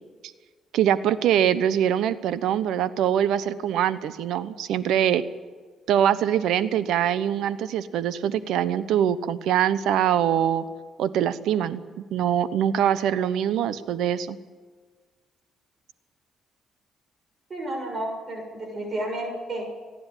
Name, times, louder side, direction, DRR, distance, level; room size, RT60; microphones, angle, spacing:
voice 1, 0.7-5.2 5.9-10.6 11.0-11.8 12.1-14.4, right 10 dB, 85° right, 14 dB, 0.9 m, -23 dB
voice 2, 17.5-19.7, right 1 dB, 40° right, 2 dB, 6.7 m, -31 dB
29.0 x 10.5 x 9.1 m, 1.5 s
cardioid pair, 90°, 0 cm